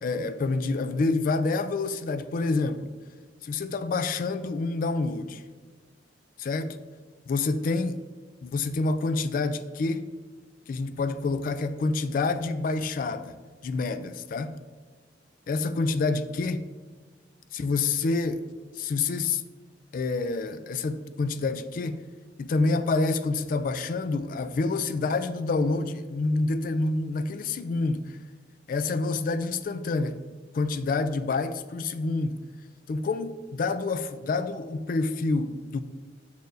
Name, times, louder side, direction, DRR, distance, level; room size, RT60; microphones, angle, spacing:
voice 1, 0.0-2.9 3.4-5.4 6.4-6.8 7.3-8.0 8.4-10.1 10.7-13.3 13.6-14.5 15.5-16.7 17.5-18.4 18.8-19.4 19.9-22.0 22.4-28.1 28.7-30.2 30.5-32.4 32.9-35.8, left 3 dB, 50° left, 0.3 m, -27 dB
6.7 x 6.6 x 2.6 m
head